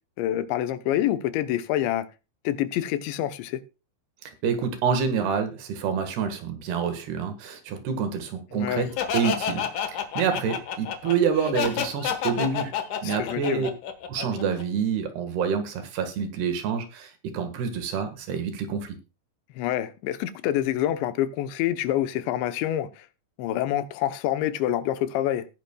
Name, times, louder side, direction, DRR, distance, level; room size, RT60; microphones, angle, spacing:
voice 1, 0.2-2.1 2.4-3.6 8.5-8.9 13.0-13.7 19.6-23.1 23.4-25.5, left 12 dB, 80° left, 3.2 m, -27 dB
voice 2, 4.2-8.9 9.1-9.7 9.9-12.7 13.0-13.7 14.1-19.0, right 6 dB, 70° right, 3.5 m, -27 dB
Laughter, 9.0-14.6, left 7 dB, 60° left, 2.2 m, -29 dB
18.5 x 10.0 x 2.3 m
omnidirectional pair, 5.1 m